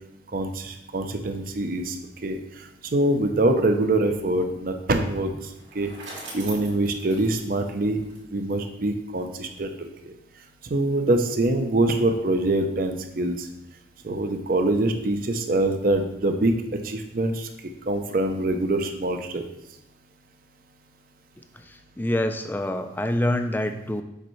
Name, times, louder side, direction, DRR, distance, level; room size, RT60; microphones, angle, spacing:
voice 1, 0.3-2.0 2.2-5.9 6.3-8.0 8.3-10.1 10.6-13.5 14.0-16.5 16.8-17.5 17.9-19.4, right 2 dB, 50° right, 6 dB, 0.5 m, -24 dB
Bicycle, 5.4-8.6, right 3 dB, 80° right, 2.3 m, -42 dB
voice 2, 21.6-24.0, left 1 dB, 10° left, 8 dB, 0.3 m, -26 dB
6.6 x 5.5 x 3.1 m, 0.87 s
head